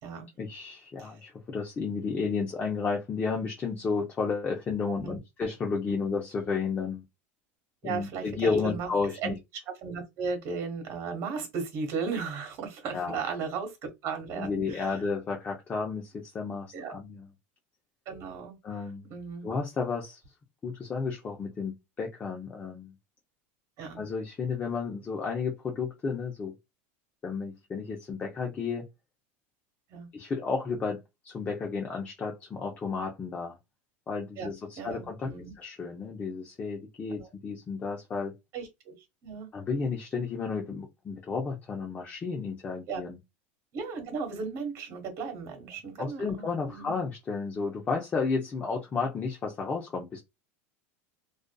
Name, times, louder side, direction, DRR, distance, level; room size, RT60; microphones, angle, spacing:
voice 1, 0.4-7.0 7.8-9.4 12.9-13.2 14.3-17.3 18.6-19.1 19.4-20.2 20.6-22.9 24.0-26.5 27.2-28.8 30.1-31.0 31.2-33.6 34.1-35.3 35.6-38.3 39.5-43.2 46.0-50.2, left 4 dB, 25° left, 0.6 m, -32 dB
voice 2, 7.8-8.9 9.2-9.3 9.7-15.0 16.7-16.9 18.0-18.6 19.1-19.5 23.8-24.0 29.9-30.1 34.4-35.5 37.1-37.3 38.5-38.9 39.2-39.5 42.9-43.0 43.7-46.9, right 5 dB, 50° right, 1.3 m, -36 dB
2.5 x 2.4 x 2.2 m
supercardioid pair, 130°, 7 cm